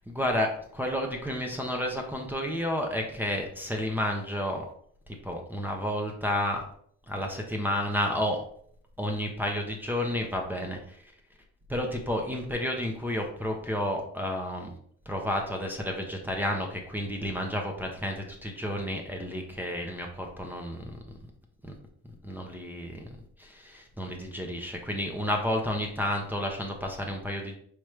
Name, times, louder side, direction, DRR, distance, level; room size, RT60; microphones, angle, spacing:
voice 1, 0.1-4.7 5.2-6.6 7.1-8.4 9.0-11.0 11.7-14.7 15.1-21.0 21.6-21.7 22.2-23.0 23.4-27.6, equal, 5° right, 0 dB, 0.7 m, -31 dB
5.0 x 3.0 x 3.2 m, 0.62 s
cardioid pair, 90°, 30 cm